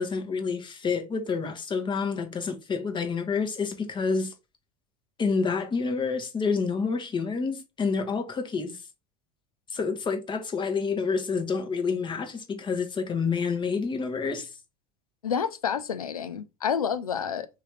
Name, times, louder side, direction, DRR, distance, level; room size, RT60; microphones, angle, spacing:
voice 1, 0.0-4.3 5.2-8.8 9.7-14.5, left 5 dB, 25° left, 1.0 m, -28 dB
voice 2, 15.2-17.5, left 7 dB, 90° left, 0.4 m, -29 dB
3.3 x 3.0 x 2.9 m
hypercardioid pair, 75°, 18 cm